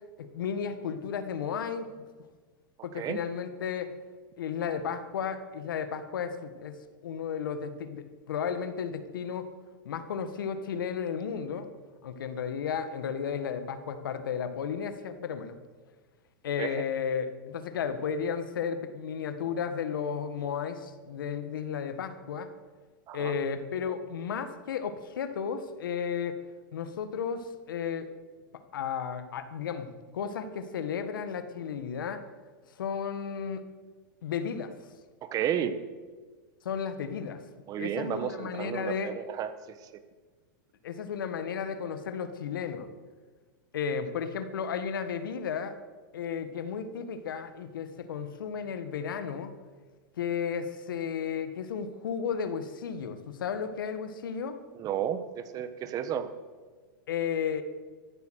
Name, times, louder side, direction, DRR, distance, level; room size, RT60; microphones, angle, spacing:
voice 1, 0.2-1.9 2.8-4.0 4.4-6.8 7.0-9.5 9.8-11.7 12.0-15.6 16.4-22.5 23.1-26.4 26.7-28.1 28.7-32.2 32.8-33.6 34.2-34.7 36.6-37.4 37.8-39.1 40.8-42.9 43.7-45.8 46.1-49.5 50.2-54.6 57.1-57.6, left 7 dB, 85° left, 10 dB, 1.7 m, -33 dB
voice 2, 35.2-35.8 37.7-39.5 54.8-56.3, right 9 dB, 35° right, 12 dB, 1.3 m, -32 dB
14.0 x 12.0 x 6.5 m, 1.4 s
hypercardioid pair, 130°, 11 cm